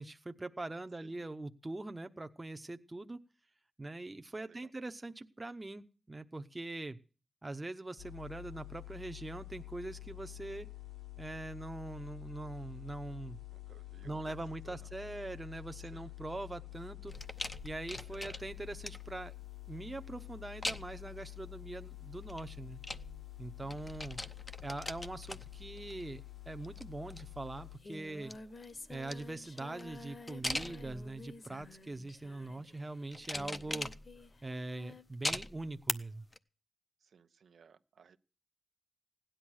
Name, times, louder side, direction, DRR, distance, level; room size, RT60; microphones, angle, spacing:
voice 1, 0.0-3.2 3.8-7.0 7.4-10.7 11.2-13.4 14.0-17.2 17.6-19.3 19.7-22.8 23.4-24.2 24.6-28.3 28.9-33.9 34.4-36.3, right 2 dB, 20° right, 8 dB, 0.9 m, -42 dB
sound 1, 8.0-27.8, left 17 dB, 80° left, 1.9 m, -48 dB
voice 2, 13.5-14.2 14.6-14.9 15.9-16.1 18.1-18.4 23.6-24.0 33.6-33.8 37.0-38.2, right 6 dB, 90° right, 10 dB, 1.0 m, -61 dB
sound 2, 17.1-19.2 20.6-21.1 22.1-23.4 23.7-26.2 26.5-27.6 28.1-31.3 31.9-32.3 33.1-34.4 35.2-35.9 36.3-36.4, left 2 dB, 20° left, 0.7 m, -42 dB
Singing, 27.1-27.2 27.4-35.1, left 3 dB, 40° left, 1.2 m, -51 dB
17.5 x 10.5 x 6.3 m, 0.36 s
wide cardioid pair, 160°, 0 cm